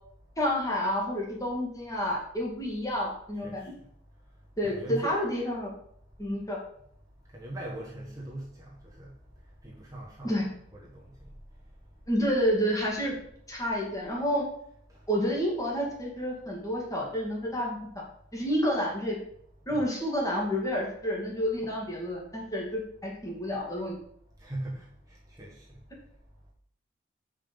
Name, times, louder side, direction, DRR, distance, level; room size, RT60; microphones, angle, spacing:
voice 1, 0.4-3.6 4.6-5.7 6.2-6.6 10.2-10.4 12.1-13.2 13.5-14.4 15.1-17.8 18.3-19.2 19.7-24.0, equal, 20° left, -2 dB, 2.3 m, -29 dB
voice 2, 4.6-5.2 7.3-9.1 9.6-11.1 19.7-19.9 24.4-25.8, right 1 dB, 20° right, -5 dB, 1.5 m, -41 dB
7.2 x 5.7 x 5.3 m, 0.68 s
head